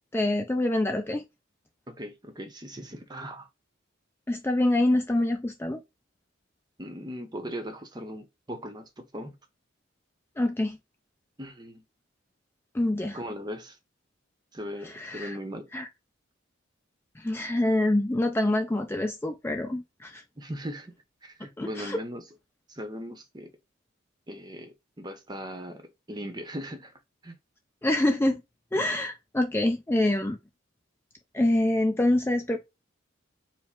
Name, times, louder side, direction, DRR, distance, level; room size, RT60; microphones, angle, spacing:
voice 1, 0.1-1.2 4.3-5.8 10.4-10.8 12.7-13.2 14.8-15.4 15.7-15.9 17.2-20.2 21.6-22.0 27.8-28.4 28.7-30.4 31.3-32.6, left 1 dB, 10° left, 0.3 m, -26 dB
voice 2, 1.9-3.5 6.8-9.4 11.4-11.8 13.1-13.8 14.5-15.7 20.4-20.9 21.2-22.3 22.7-23.5 24.3-26.9 27.2-27.4, equal, 20° right, 0.7 m, -39 dB
4.8 x 2.0 x 3.6 m
head